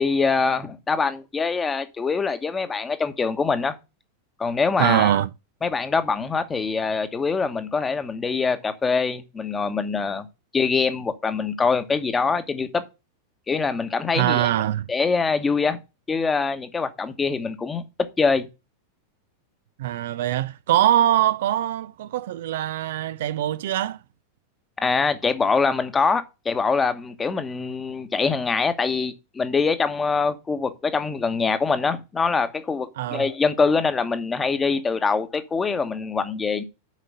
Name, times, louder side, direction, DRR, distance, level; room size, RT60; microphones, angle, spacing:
voice 1, 0.0-3.7 4.4-5.2 5.6-10.3 10.5-12.8 13.5-14.5 14.9-15.8 16.1-17.8 18.2-18.5 24.8-36.6, left 4 dB, 15° left, 1.1 m, -24 dB
voice 2, 4.8-5.3 14.2-14.9 19.8-24.0 33.0-33.3, right 12 dB, 55° right, 0.4 m, -22 dB
7.5 x 5.1 x 6.5 m
figure-of-eight pair, 90°, 0 cm